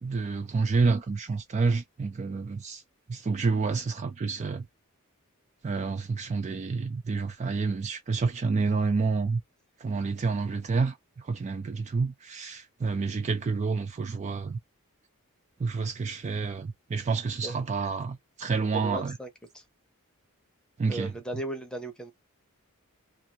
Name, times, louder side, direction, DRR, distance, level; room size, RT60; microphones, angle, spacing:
voice 1, 0.0-2.8 3.1-4.7 5.6-9.4 9.8-14.6 15.6-19.2 20.8-21.1, right 4 dB, 30° right, 0.3 m, -29 dB
voice 2, 18.7-19.3 19.5-19.6 20.9-22.1, right 1 dB, 5° left, 0.7 m, -36 dB
2.6 x 2.4 x 2.8 m
head